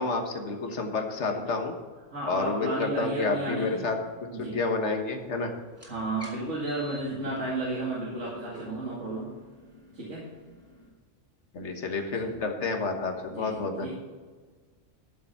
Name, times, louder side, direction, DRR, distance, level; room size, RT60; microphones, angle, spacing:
voice 1, 0.0-1.7 2.3-4.0 4.4-5.5 11.5-13.9, left 3 dB, 65° left, 4 dB, 1.7 m, -29 dB
voice 2, 2.1-3.9 4.3-4.6 5.8-9.3 9.9-10.3 12.1-12.3 13.3-13.9, right 2 dB, 70° right, -6 dB, 2.6 m, -33 dB
sound 1, 5.7-10.9, equal, 10° right, 2.7 m, -50 dB
12.5 x 7.0 x 5.8 m, 1.4 s
omnidirectional pair, 1.3 m